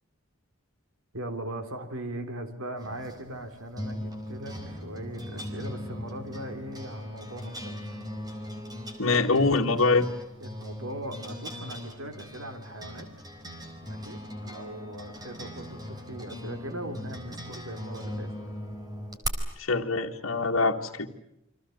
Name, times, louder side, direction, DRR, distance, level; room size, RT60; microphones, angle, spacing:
voice 1, 1.1-8.0 10.4-13.1 13.8-18.3, right 1 dB, 90° right, 7 dB, 3.4 m, -39 dB
sound 1, 2.8-19.3, equal, 20° right, 4.3 m, -39 dB
voice 2, 9.0-10.1 19.6-21.1, left 3 dB, 75° left, 0 dB, 2.0 m, -24 dB
29.5 x 25.0 x 7.9 m, 0.81 s
head